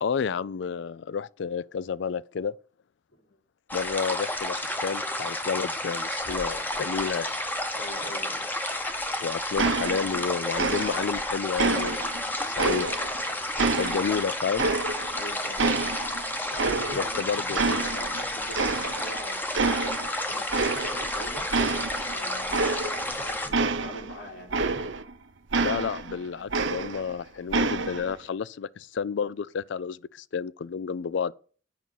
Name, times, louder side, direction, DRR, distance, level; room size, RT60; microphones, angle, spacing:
voice 1, 0.0-2.5 3.7-7.4 9.2-12.0 12.4-12.9 13.7-14.7 16.9-17.9 25.6-31.3, left 6 dB, 65° left, 0.4 m, -30 dB
sound 1, 3.7-23.5, left 1 dB, 10° left, 0.9 m, -31 dB
voice 2, 7.7-8.5 13.5-13.9 15.1-15.9 16.5-17.2 17.6-19.9 20.3-20.7 21.0-21.4 21.7-22.7 23.1-24.8, equal, 85° left, 6.0 m, -43 dB
sound 2, 9.6-10.3 10.6-11.2 11.6-13.2 13.6-15.2 15.6-17.2 17.5-18.2 18.5-19.2 19.5-20.1 20.5-21.2 21.5-25.1 25.5-27.2 27.5-28.1, right 3 dB, 70° right, 0.8 m, -28 dB
8.5 x 5.4 x 7.5 m
head